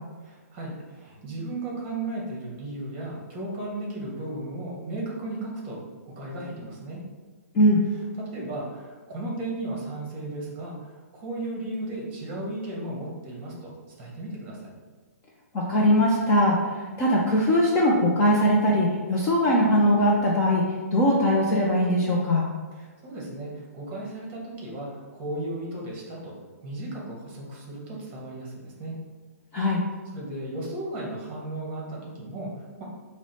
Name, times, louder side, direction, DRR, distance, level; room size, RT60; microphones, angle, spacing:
voice 1, 0.2-5.8 6.1-7.0 8.2-14.7 22.7-26.3 26.6-29.0 30.1-32.8, right 2 dB, 20° right, -3 dB, 1.0 m, -35 dB
voice 2, 15.5-22.4 29.5-29.8, equal, 15° left, -4 dB, 0.3 m, -21 dB
4.6 x 2.0 x 4.0 m, 1.4 s
hypercardioid pair, 170°, 9 cm